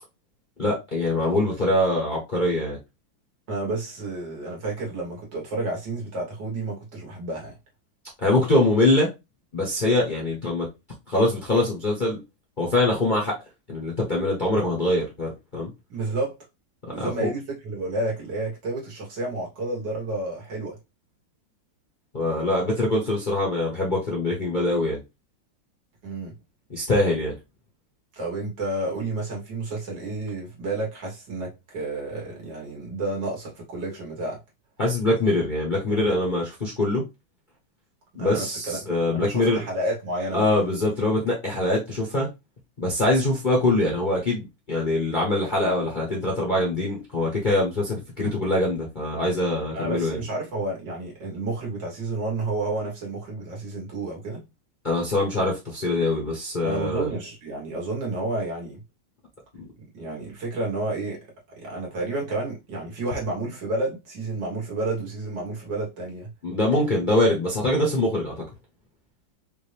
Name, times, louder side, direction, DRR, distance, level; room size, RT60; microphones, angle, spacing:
voice 1, 0.6-2.8 8.2-9.1 9.5-10.7 11.1-12.2 12.6-13.4 13.7-15.7 17.0-17.3 22.1-25.0 26.7-27.3 34.8-37.0 38.1-39.6 40.3-42.3 42.8-50.2 54.8-57.1 66.4-68.3, left 1 dB, 30° left, 0.9 m, -23 dB
voice 2, 3.5-7.5 15.9-16.4 16.9-20.8 26.0-26.4 28.1-34.4 38.2-38.8 39.1-40.5 49.7-54.4 56.6-58.8 59.9-61.2 61.6-66.3, right 2 dB, 65° right, 2.2 m, -30 dB
5.1 x 2.7 x 3.3 m
omnidirectional pair, 2.1 m